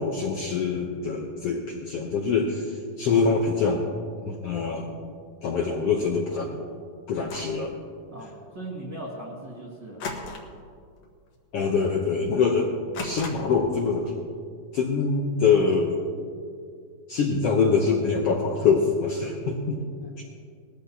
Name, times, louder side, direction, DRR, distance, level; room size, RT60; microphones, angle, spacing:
voice 1, 0.0-3.8 4.2-4.9 5.4-6.6 7.1-7.7 11.5-12.7 13.0-14.1 14.7-16.0 17.1-19.8 20.2-20.3, left 5 dB, 80° left, 1 dB, 1.3 m, -24 dB
sound 1, 7.1-7.6 10.0-10.7 11.0-11.3 11.7-11.8 12.9-13.7, left 3 dB, 60° left, 2.1 m, -36 dB
voice 2, 8.1-10.0, right 1 dB, 40° right, -6 dB, 1.8 m, -38 dB
20.5 x 14.0 x 2.8 m, 2.2 s
omnidirectional pair, 3.9 m